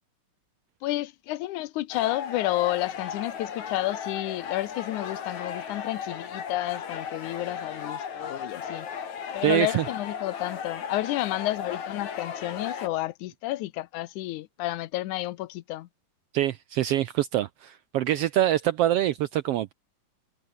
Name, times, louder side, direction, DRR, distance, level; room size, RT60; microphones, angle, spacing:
voice 1, 0.8-8.9 9.3-15.9, left 16 dB, 85° left, 2.3 m, -31 dB
sound 1, 1.9-12.9, left 7 dB, 70° left, 4.0 m, -36 dB
voice 2, 9.4-9.8 16.3-19.7, right 13 dB, 75° right, 1.4 m, -25 dB
omnidirectional pair, 3.4 m